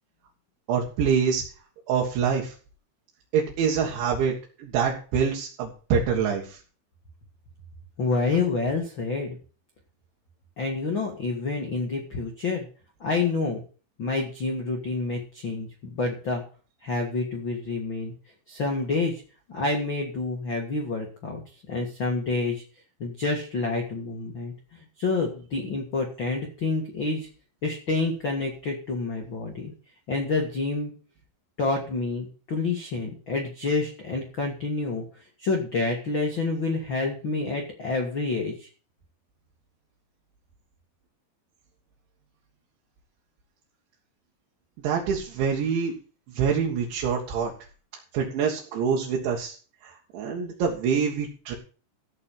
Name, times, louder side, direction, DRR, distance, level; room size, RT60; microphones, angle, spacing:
voice 1, 0.7-1.4 1.9-2.5 3.3-6.6 44.8-45.9 46.3-47.5 48.1-49.6 49.8-51.6, right 6 dB, 75° right, -3 dB, 4.0 m, -25 dB
voice 2, 8.0-9.4 10.6-12.7 13.0-13.6 14.0-16.4 16.8-18.1 18.5-19.1 19.5-21.4 21.7-22.6 23.0-27.3 27.6-29.7 30.1-30.9 31.6-35.0 35.4-38.7, left 3 dB, 60° left, 2 dB, 1.2 m, -28 dB
15.0 x 5.3 x 7.2 m, 0.39 s
omnidirectional pair, 5.4 m